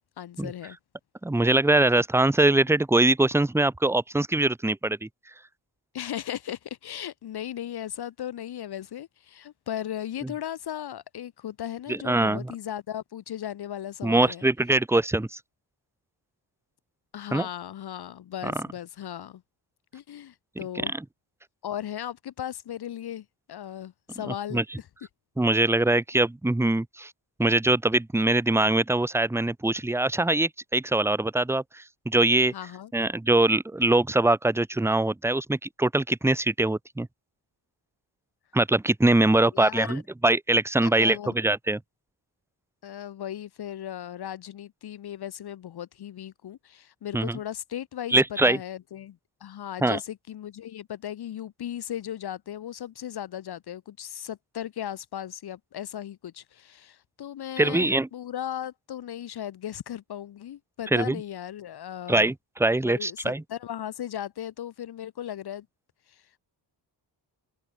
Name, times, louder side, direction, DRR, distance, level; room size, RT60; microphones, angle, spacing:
voice 1, 0.2-0.8 5.9-14.5 17.1-19.4 19.9-20.9 21.6-24.9 32.5-32.9 39.5-40.0 40.8-41.4 42.8-62.3 62.8-65.7 66.1-66.4, left 11 dB, 60° left, 1.3 m, -37 dB
voice 2, 1.2-5.1 11.9-12.5 14.0-15.3 17.3-17.5 18.4-18.5 20.9-21.0 24.3-24.6 25.4-27.1 27.4-32.5 32.9-37.1 38.5-41.8 47.1-47.4 48.1-48.6 49.8-50.0 57.6-58.1 60.9-61.2 62.1-62.3 62.6-63.4, right 2 dB, 5° right, 0.8 m, -23 dB
cardioid pair, 110°, 43 cm